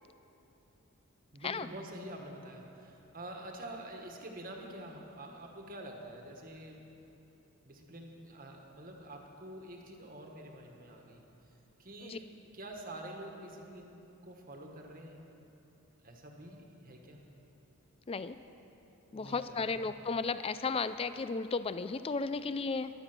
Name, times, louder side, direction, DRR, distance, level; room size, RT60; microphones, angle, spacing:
voice 1, 1.3-6.8 7.7-11.2 11.8-14.0 14.2-15.2 16.0-17.2 19.1-20.0, right 1 dB, 40° right, 1 dB, 1.4 m, -47 dB
voice 2, 19.1-22.9, left 4 dB, 25° left, 13 dB, 0.3 m, -34 dB
14.5 x 11.5 x 6.1 m, 3.0 s
head